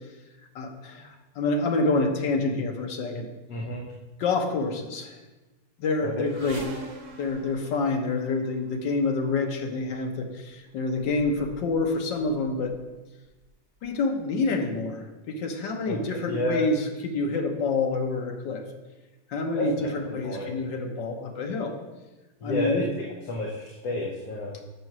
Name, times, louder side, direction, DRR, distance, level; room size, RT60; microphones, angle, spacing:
voice 1, 0.5-3.3 4.2-5.2 5.8-6.6 7.2-12.8 13.8-18.6 19.3-21.7 22.4-22.9, left 3 dB, 80° left, 3 dB, 1.7 m, -27 dB
voice 2, 3.5-3.8 6.0-6.1 15.9-16.6 19.6-19.9 20.2-20.5 22.4-22.8 23.3-24.6, left 1 dB, 55° left, -2 dB, 1.4 m, -30 dB
sound 1, 6.2-8.7 9.7-9.9 10.7-10.8 11.0-11.9 12.2-12.7 13.4-13.5 13.9-14.0, right 1 dB, 50° right, 1.2 m, -42 dB
6.5 x 6.2 x 6.0 m, 1.1 s
omnidirectional pair, 1.9 m